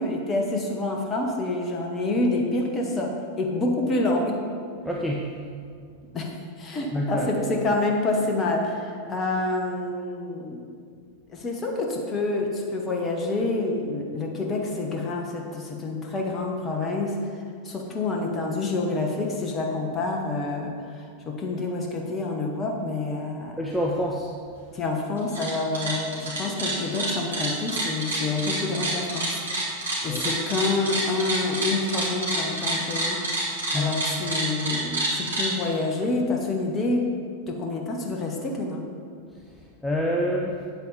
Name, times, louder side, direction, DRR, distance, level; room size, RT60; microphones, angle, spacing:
voice 1, 0.0-4.3 6.1-10.6 11.3-17.2 17.6-23.6 24.7-29.4 30.0-37.1 37.5-38.8, left 2 dB, 25° left, 0 dB, 1.1 m, -27 dB
voice 2, 4.8-5.3 6.9-7.3 23.6-24.3 30.1-30.3 33.7-33.9 39.8-40.6, left 1 dB, ahead, -2 dB, 0.7 m, -26 dB
sound 1, 25.2-25.5 25.7-35.5, right 2 dB, 70° right, 2.4 m, -27 dB
8.7 x 8.0 x 4.2 m, 2.2 s
figure-of-eight pair, 90°, 0 cm